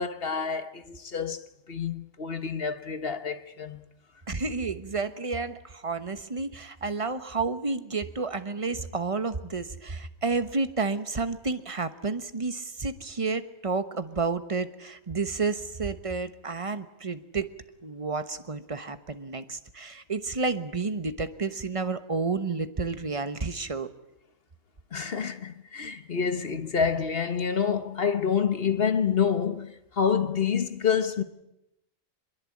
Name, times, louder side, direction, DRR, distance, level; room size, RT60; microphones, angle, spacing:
voice 1, 0.0-1.4 1.7-3.8 24.9-31.2, left 6 dB, 50° left, 1.4 m, -27 dB
voice 2, 4.3-17.5 17.8-23.9, right 4 dB, 25° right, 1.1 m, -31 dB
24.0 x 21.5 x 8.6 m
omnidirectional pair, 1.4 m